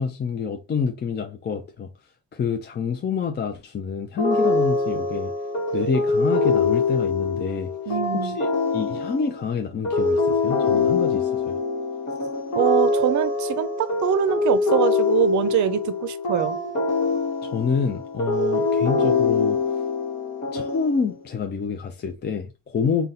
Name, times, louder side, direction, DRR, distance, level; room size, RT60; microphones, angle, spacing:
voice 1, 0.0-1.9 2.3-5.3 5.7-7.7 8.1-11.6 17.4-19.6 20.5-23.1, left 5 dB, 30° left, 0.4 m, -27 dB
sound 1, 4.2-21.4, left 3 dB, 50° left, 1.2 m, -24 dB
voice 2, 7.9-8.4 12.5-16.6, right 10 dB, 60° right, 0.5 m, -23 dB
4.0 x 2.3 x 3.8 m
cardioid pair, 115°, 34 cm